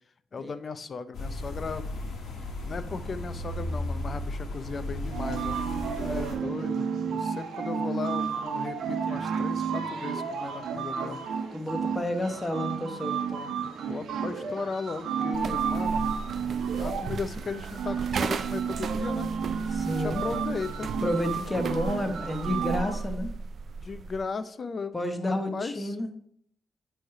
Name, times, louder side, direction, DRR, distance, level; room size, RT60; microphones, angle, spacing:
voice 1, 0.3-1.9 2.6-5.6 6.0-11.2 12.3-12.4 13.9-16.1 16.8-19.3 19.9-20.9 21.7-21.8 23.8-26.0, left 4 dB, 45° left, 13 dB, 0.5 m, -36 dB
sound 1, 1.1-6.3, left 1 dB, 65° left, 1.5 m, -35 dB
sound 2, 5.1-23.0, right 6 dB, 75° right, 1.0 m, -32 dB
voice 2, 6.0-6.8 11.5-13.5 19.7-20.2 21.0-23.3 24.9-26.1, left 1 dB, 15° left, 6 dB, 1.1 m, -31 dB
sound 3, 15.3-24.3, right 4 dB, 60° right, 0.4 m, -36 dB
9.0 x 3.3 x 4.7 m, 0.66 s
cardioid pair, 85°, 0 cm